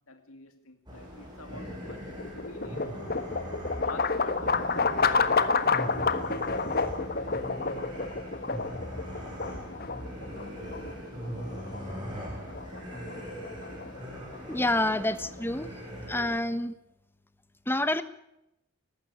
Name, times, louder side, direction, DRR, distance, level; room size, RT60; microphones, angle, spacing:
voice 1, 0.0-3.3 3.6-5.0, left 3 dB, 85° left, 6 dB, 2.3 m, -47 dB
sound 1, 0.9-16.4, equal, 20° right, 7.5 m, -40 dB
sound 2, 1.5-15.6, left 4 dB, 45° left, 1.4 m, -30 dB
voice 2, 14.5-15.7 16.1-16.8 17.7-18.0, left 1 dB, 10° left, 12 dB, 1.2 m, -27 dB
19.5 x 15.0 x 9.6 m, 0.85 s
head